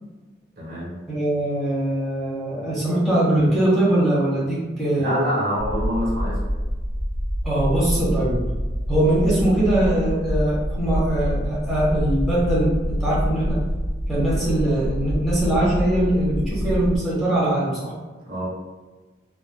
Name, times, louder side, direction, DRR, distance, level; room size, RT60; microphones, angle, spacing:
voice 1, 0.6-0.9 5.0-6.4 18.2-18.5, equal, 55° right, -6 dB, 0.9 m, -25 dB
voice 2, 1.1-5.2 7.4-8.4 8.9-13.6 14.1-17.9, right 1 dB, ahead, -10 dB, 1.0 m, -22 dB
sound 1, 5.6-17.0, equal, 15° left, 0.3 m, -26 dB
3.2 x 2.1 x 2.2 m, 1.2 s
head